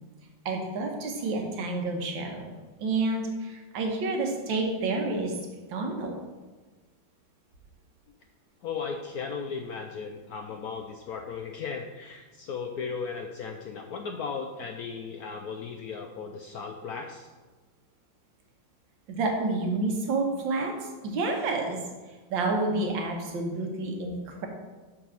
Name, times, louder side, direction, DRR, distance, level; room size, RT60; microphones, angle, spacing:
voice 1, 0.5-2.5 2.8-5.3 5.7-6.1 19.1-24.5, right 3 dB, 75° right, 2 dB, 1.8 m, -29 dB
voice 2, 8.6-17.3, left 5 dB, 80° left, 4 dB, 0.8 m, -36 dB
6.1 x 5.0 x 6.2 m, 1.3 s
omnidirectional pair, 2.1 m